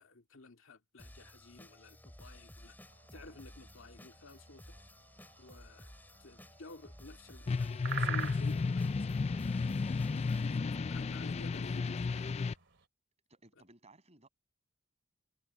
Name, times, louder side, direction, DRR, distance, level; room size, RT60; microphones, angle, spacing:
voice 1, 0.0-2.8 3.1-4.8 5.4-5.9 6.2-9.8 10.4-12.3, left 3 dB, 75° left, 2.1 m, -53 dB
sound 1, 1.0-10.6, left 1 dB, 10° left, 2.9 m, -55 dB
sound 2, 2.9-12.9, right 6 dB, 65° right, 2.4 m, -48 dB
sound 3, 7.5-12.5, left 4 dB, 30° left, 0.3 m, -33 dB
voice 2, 10.1-11.0 13.3-14.3, right 2 dB, 35° right, 7.6 m, -63 dB
head